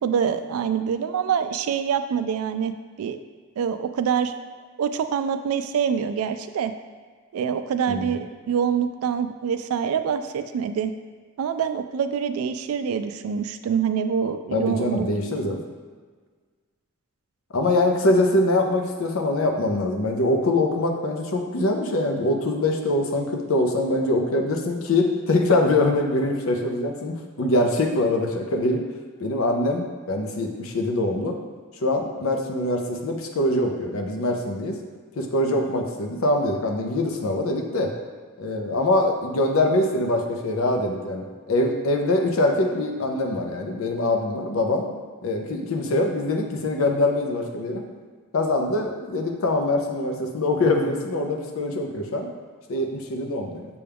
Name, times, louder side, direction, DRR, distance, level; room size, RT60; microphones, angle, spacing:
voice 1, 0.0-2.7 3.0-3.2 3.6-4.3 4.8-6.7 7.3-10.9 11.4-15.1, right 7 dB, 85° right, 11 dB, 0.3 m, -25 dB
voice 2, 14.5-15.6 17.5-28.8 29.2-31.3 31.8-34.8 35.2-37.9 38.4-44.9 45.2-47.8 48.3-52.3 52.7-53.7, left 2 dB, 75° left, 3 dB, 0.6 m, -23 dB
6.8 x 2.3 x 3.4 m, 1.5 s
head